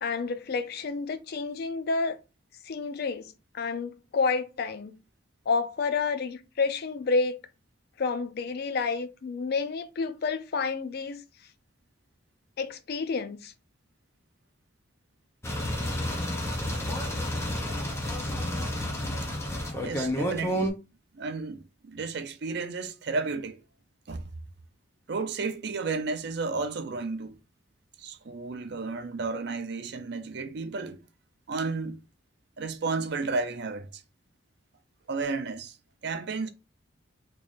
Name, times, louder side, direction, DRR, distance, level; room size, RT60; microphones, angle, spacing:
voice 1, 0.0-2.2 2.6-5.0 5.5-7.4 8.0-11.2 12.6-13.5, left 4 dB, 50° left, 0.4 m, -29 dB
sound 1, 15.4-20.7, equal, 15° left, 0.6 m, -30 dB
voice 2, 19.8-20.7 21.1-23.6 24.1-24.3 25.1-27.4 28.0-31.0 31.5-32.0 32.6-34.0 35.1-35.8 36.0-36.5, right 4 dB, 55° right, 0.5 m, -32 dB
3.1 x 2.5 x 3.9 m
head